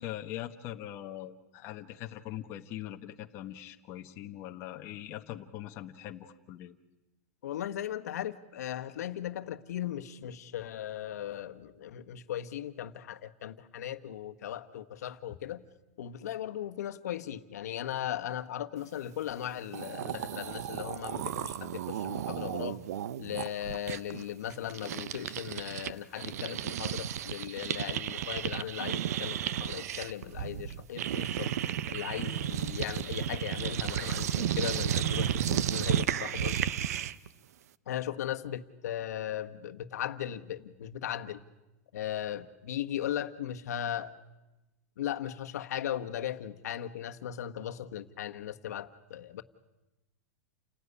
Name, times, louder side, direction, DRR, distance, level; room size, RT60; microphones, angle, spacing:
voice 1, 0.0-6.7, left 12 dB, 30° left, 4 dB, 1.2 m, -42 dB
voice 2, 7.4-15.6 16.0-22.8 23.2-31.5 31.9-36.6 37.9-41.4 41.9-44.1 45.0-49.4, left 11 dB, 80° left, 8 dB, 1.4 m, -37 dB
sound 1, 19.4-19.5 19.7-25.9 26.2-37.3, right 10 dB, 75° right, 0.8 m, -33 dB
29.0 x 16.5 x 9.9 m, 1.0 s
supercardioid pair, 165°, 9 cm